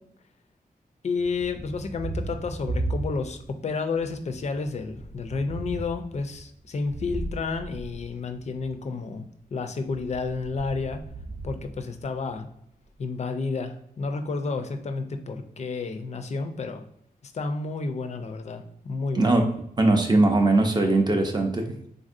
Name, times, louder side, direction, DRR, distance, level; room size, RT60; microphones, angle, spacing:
voice 1, 1.0-9.3 9.5-11.0 11.4-12.5 13.0-16.8 17.2-19.4, left 4 dB, 50° left, 7 dB, 0.4 m, -31 dB
Thunder, 1.2-3.6 3.9-8.7 9.8-12.4, right 2 dB, 75° right, 0.7 m, -36 dB
voice 2, 19.1-19.5 19.8-21.8, right 2 dB, 30° right, 3 dB, 0.4 m, -20 dB
3.4 x 2.6 x 2.4 m, 0.72 s
wide cardioid pair, 150°, 15 cm